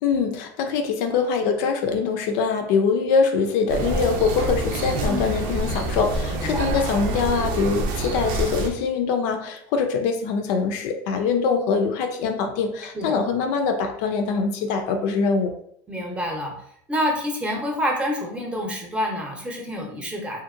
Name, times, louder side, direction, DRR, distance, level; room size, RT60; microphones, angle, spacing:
voice 1, 0.0-15.5, left 5 dB, 70° left, 5 dB, 0.5 m, -23 dB
sound 1, 3.7-8.7, right 2 dB, 65° right, 0.6 m, -27 dB
voice 2, 6.3-6.8 12.9-13.1 15.9-16.5 16.9-20.4, equal, 10° right, 0 dB, 0.7 m, -27 dB
2.8 x 2.7 x 2.5 m, 0.70 s
supercardioid pair, 125°, 9 cm